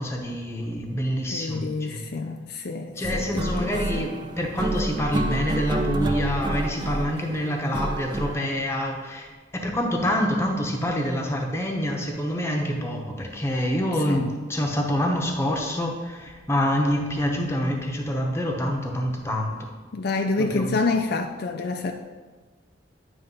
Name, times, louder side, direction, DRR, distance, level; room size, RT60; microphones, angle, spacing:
voice 1, 0.0-2.0 3.0-19.6 20.4-20.8, equal, 15° left, 1 dB, 0.9 m, -26 dB
voice 2, 1.3-4.1 14.1-14.3 19.9-21.9, left 3 dB, 60° left, 4 dB, 0.4 m, -28 dB
sound 1, 3.0-8.4, right 2 dB, 25° right, 0.4 m, -29 dB
9.5 x 3.4 x 5.4 m, 1.3 s
head